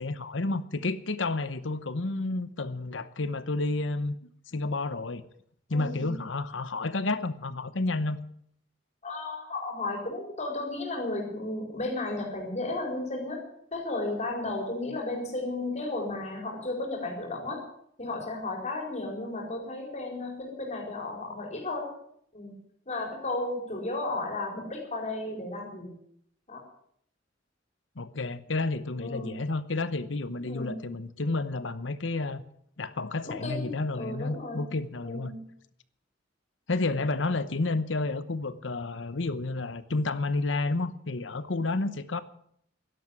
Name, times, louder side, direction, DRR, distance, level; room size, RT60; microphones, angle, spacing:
voice 1, 0.0-4.2 4.5-5.2 5.7-8.2 28.0-32.4 32.8-35.3 36.7-42.2, left 2 dB, 70° left, 14 dB, 0.9 m, -30 dB
voice 2, 5.7-6.1 9.0-17.7 18.0-21.9 22.3-22.5 22.9-25.9 26.5-26.6 29.0-29.3 30.5-30.8 33.2-34.7 35.0-35.5, left 2 dB, 40° left, 1 dB, 4.8 m, -34 dB
12.5 x 11.5 x 9.6 m, 0.69 s
head